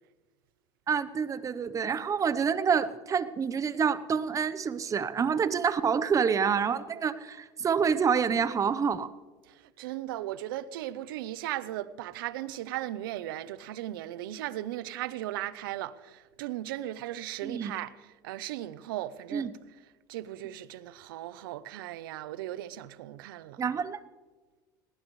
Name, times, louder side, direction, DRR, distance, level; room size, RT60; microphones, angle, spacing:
voice 1, 0.9-9.1 17.4-17.7 19.3-19.5 23.6-24.0, right 6 dB, 30° right, 0.9 m, -27 dB
voice 2, 9.5-17.9 18.2-19.5 20.1-23.6, right 14 dB, 85° right, 0.7 m, -37 dB
19.0 x 18.5 x 3.2 m
supercardioid pair, 100°, 11 cm